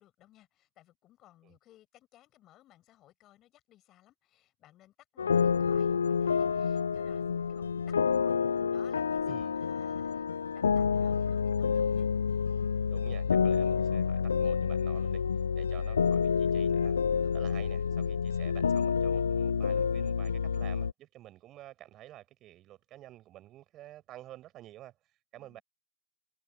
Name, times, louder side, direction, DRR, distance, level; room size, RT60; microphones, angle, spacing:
voice 1, 0.0-8.4 8.7-12.1 15.8-16.0 17.2-17.5 25.4-25.6, left 14 dB, 30° left, 7.6 m, -60 dB
sound 1, 5.2-20.9, left 6 dB, 75° left, 0.3 m, -28 dB
voice 2, 9.2-9.5 12.9-15.2 15.5-17.0 17.3-24.9 25.3-25.6, right 14 dB, 30° right, 4.9 m, -50 dB
hypercardioid pair, 115°, 0 cm